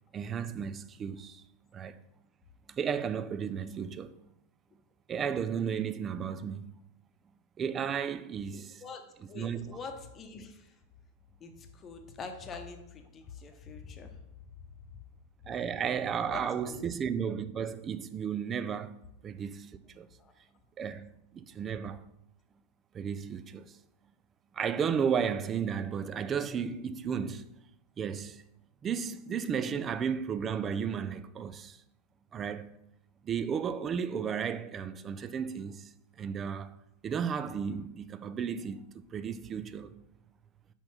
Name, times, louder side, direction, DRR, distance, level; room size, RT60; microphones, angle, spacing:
voice 1, 0.1-1.4 1.7-2.0 2.7-4.1 5.1-6.6 7.6-8.8 9.4-9.8 15.5-20.1 20.8-22.0 22.9-23.8 24.5-27.6 28.0-28.4 28.8-31.8 32.3-32.8 33.2-36.7 37.0-40.0, right 7 dB, 25° right, 0.4 m, -34 dB
voice 2, 8.5-10.7 11.4-14.2 16.3-16.8 20.2-20.3, left 5 dB, 25° left, 0.9 m, -45 dB
5.3 x 4.4 x 5.7 m
figure-of-eight pair, 90°, 0 cm